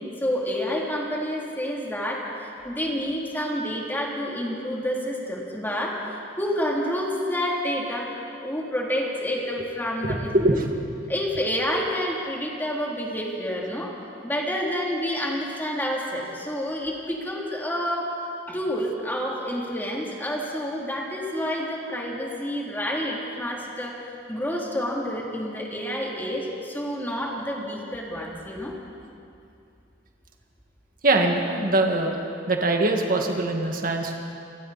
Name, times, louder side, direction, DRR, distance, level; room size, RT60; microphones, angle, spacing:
voice 1, 0.0-6.0 6.4-8.1 8.4-10.6 11.1-13.9 14.2-18.1 18.5-24.0 24.3-28.7, equal, 10° left, -3 dB, 3.0 m, -29 dB
voice 2, 10.0-10.7 31.0-34.1, right 2 dB, 50° right, 2 dB, 1.9 m, -23 dB
29.0 x 22.0 x 4.2 m, 2.5 s
head